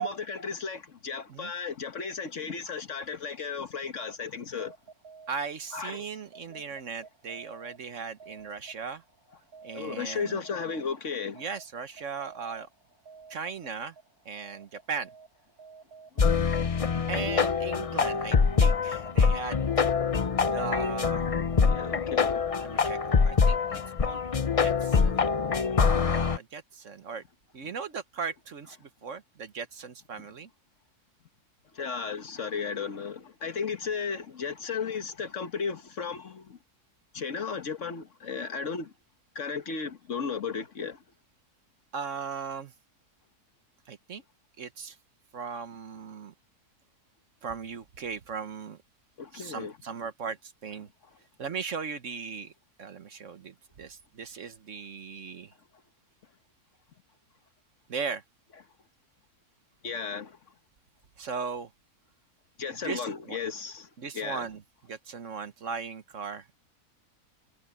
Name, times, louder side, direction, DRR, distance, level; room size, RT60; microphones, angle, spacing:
voice 1, 0.0-4.7 5.7-6.0 9.7-11.4 16.2-16.3 21.6-22.4 31.8-36.6 37.1-38.9 39.3-41.0 49.2-49.7 59.8-60.4 62.6-63.9 64.1-64.4, left 5 dB, 55° left, 1.5 m, -34 dB
sound 1, 4.5-23.0, right 5 dB, 75° right, 6.3 m, -53 dB
voice 2, 5.3-9.0 9.6-10.4 11.3-12.7 13.3-13.9 14.2-15.1 17.1-19.9 20.4-21.3 22.6-23.0 23.2-25.3 26.1-27.2 27.5-30.5 41.9-42.7 43.9-44.2 44.6-45.0 45.3-46.3 47.4-48.8 49.3-50.9 51.4-52.5 52.8-55.5 57.9-58.2 61.2-61.7 62.7-63.4 64.0-66.5, right 6 dB, 55° right, 1.4 m, -38 dB
sound 2, 16.2-26.4, left 5 dB, 40° left, 0.5 m, -25 dB
omnidirectional pair, 1.6 m